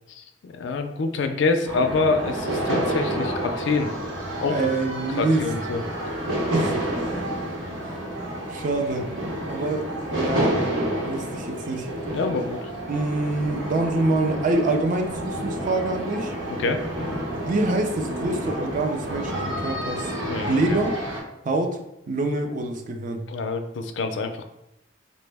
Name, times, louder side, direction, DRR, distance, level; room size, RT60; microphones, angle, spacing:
voice 1, 0.4-3.9 4.4-4.7 5.2-5.8 12.1-12.6 16.5-16.8 20.3-20.8 23.3-24.4, left 4 dB, 65° left, 7 dB, 0.4 m, -26 dB
sound 1, 1.7-21.2, right 1 dB, 85° right, 0.9 m, -29 dB
voice 2, 4.5-5.5 6.4-6.8 8.5-9.1 9.5-10.6 11.1-11.9 12.9-16.3 17.4-20.1 20.5-20.9 21.4-21.8 22.1-23.2, right 2 dB, 40° right, 4 dB, 0.4 m, -25 dB
4.2 x 2.0 x 3.3 m, 0.87 s
head